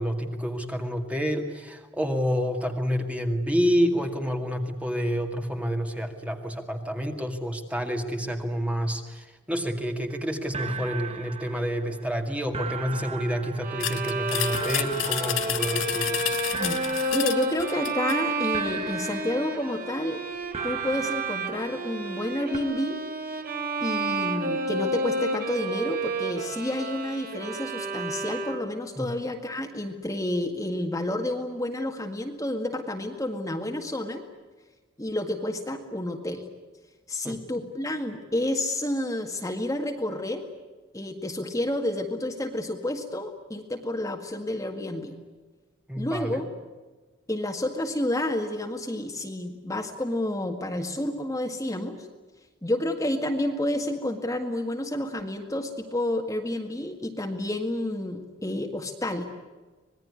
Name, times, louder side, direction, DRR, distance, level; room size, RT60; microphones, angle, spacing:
voice 1, 0.0-16.2 29.0-29.1 37.2-37.4 45.9-46.4, equal, 5° right, 4 dB, 2.2 m, -28 dB
sound 1, 10.1-10.2 10.5-12.2 12.5-16.3 16.5-18.2 18.5-20.2 20.5-22.3 22.5-22.6, right 5 dB, 30° right, 1.2 m, -38 dB
Bowed string instrument, 13.6-28.9, right 2 dB, 50° right, 3.9 m, -31 dB
sound 2, 13.8-18.2, left 12 dB, 80° left, 1.3 m, -30 dB
voice 2, 16.5-20.2 20.6-23.0 23.8-34.2 35.0-36.4 37.1-40.4 40.9-45.2 45.9-46.5 47.3-52.1 52.6-59.3, left 1 dB, 15° left, 3 dB, 1.9 m, -30 dB
25.5 x 20.0 x 9.8 m, 1.3 s
head